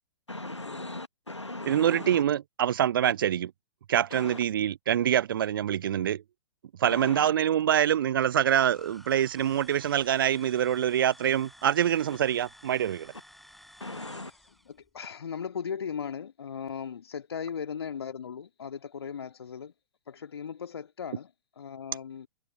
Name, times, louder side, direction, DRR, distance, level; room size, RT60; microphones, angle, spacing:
voice 1, 0.3-2.2 3.0-3.1 4.1-4.4 6.8-7.3 13.8-14.3, left 2 dB, 85° left, 1.3 m, -38 dB
voice 2, 1.7-3.5 3.9-6.2 6.8-13.1, right 10 dB, 50° right, 0.4 m, -25 dB
sound 1, 8.4-14.7, equal, ahead, 5.2 m, -53 dB
voice 3, 14.7-19.7 20.1-22.3, left 7 dB, 60° left, 2.1 m, -38 dB
figure-of-eight pair, 115°, 14 cm